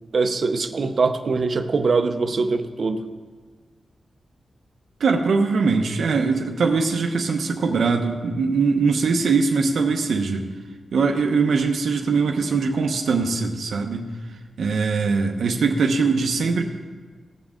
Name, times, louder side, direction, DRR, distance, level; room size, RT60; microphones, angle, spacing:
voice 1, 0.1-3.0, right 4 dB, 50° right, 8 dB, 0.8 m, -22 dB
voice 2, 5.0-10.5 10.9-14.1 14.6-16.6, right 4 dB, 80° right, 2 dB, 0.8 m, -21 dB
18.0 x 7.4 x 3.7 m, 1.4 s
wide cardioid pair, 125°, 0 cm